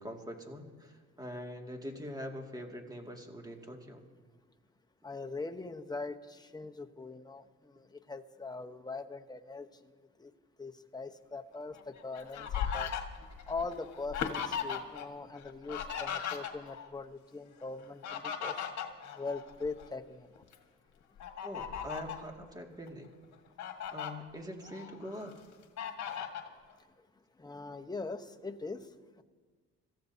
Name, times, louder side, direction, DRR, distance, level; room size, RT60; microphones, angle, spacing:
voice 1, 0.0-4.0 21.4-23.1 23.9-25.3, equal, 15° right, 2 dB, 2.2 m, -43 dB
voice 2, 5.0-9.7 10.2-10.3 10.6-12.9 13.5-18.7 19.2-20.4 27.4-28.9 29.2-29.3, left 3 dB, 15° left, 5 dB, 1.0 m, -41 dB
Fowl, 11.7-15.1 15.3-16.9 17.8-19.9 20.4-20.5 21.2-22.3 22.9-23.0 23.3-24.1 24.6-25.3 25.8-26.5, left 8 dB, 65° left, 1.6 m, -38 dB
26.5 x 14.5 x 2.8 m, 1.5 s
cardioid pair, 90°, 30 cm